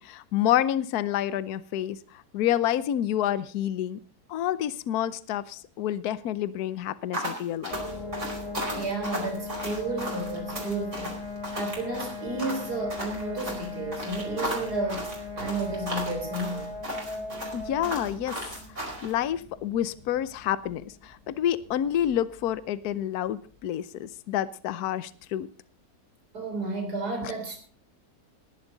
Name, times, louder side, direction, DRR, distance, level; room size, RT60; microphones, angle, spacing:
voice 1, 0.0-4.0 4.3-7.8 17.5-18.4 19.0-25.5 27.2-27.3, left 11 dB, 70° left, 1.2 m, -28 dB
sound 1, 7.1-19.1, equal, 45° right, 5.2 m, -35 dB
sound 2, 7.7-22.3, left 2 dB, 20° left, 3.7 m, -39 dB
voice 2, 8.6-11.1 11.5-15.1 15.3-16.7 26.3-27.6, right 2 dB, 70° right, 4.4 m, -32 dB
19.5 x 11.0 x 4.0 m
omnidirectional pair, 1.8 m